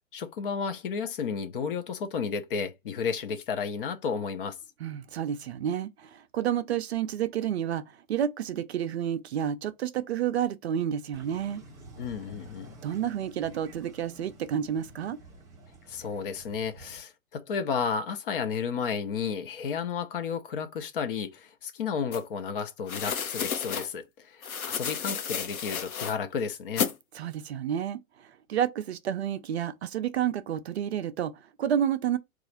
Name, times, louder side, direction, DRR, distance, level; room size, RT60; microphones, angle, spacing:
voice 1, 0.1-4.6 12.0-12.7 15.9-26.9, left 6 dB, 40° left, 0.6 m, -32 dB
voice 2, 4.8-11.6 12.8-15.2 27.1-32.2, right 9 dB, 50° right, 0.5 m, -30 dB
sound 1, 11.1-17.0, right 1 dB, 10° right, 0.7 m, -50 dB
sound 2, 22.1-22.2 22.9-23.9 24.4-26.2 26.8-26.9, left 7 dB, 80° left, 0.9 m, -32 dB
3.9 x 2.4 x 4.3 m
hypercardioid pair, 130°, 42 cm